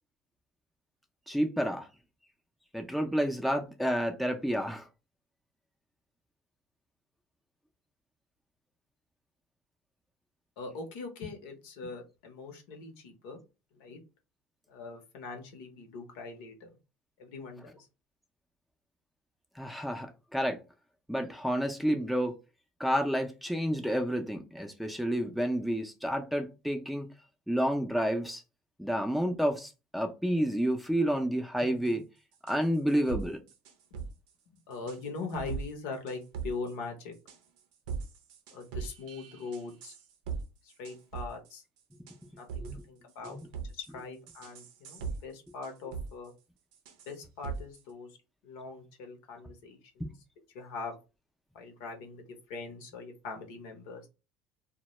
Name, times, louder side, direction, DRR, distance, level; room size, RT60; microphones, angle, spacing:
voice 1, 1.3-1.9 2.7-4.9 19.6-20.6 21.1-22.3 22.8-27.1 27.5-28.4 28.8-32.0 32.5-33.4 42.6-42.8 43.2-43.4 50.0-50.1, equal, ahead, 0.4 m, -30 dB
voice 2, 10.6-13.4 13.7-14.0 14.7-16.7 17.2-17.9 33.9-34.0 34.7-37.1 38.5-39.9 40.6-41.6 42.4-43.4 43.7-46.3 47.1-48.1 48.4-50.1 50.5-51.0 51.5-52.2 52.5-54.1, left 4 dB, 85° left, 0.7 m, -41 dB
sound 1, 31.9-32.0 32.5-32.6 32.9-34.1 34.7-35.0 35.3-35.7 36.1-36.7 37.3-37.6 37.9-40.4 40.7-41.5 42.1-42.8 43.2-43.9 44.3-45.2 45.5-46.1 46.7-47.1 47.4-47.8, right 6 dB, 85° right, 0.6 m, -39 dB
2.2 x 2.1 x 3.0 m
supercardioid pair, 105°, 4 cm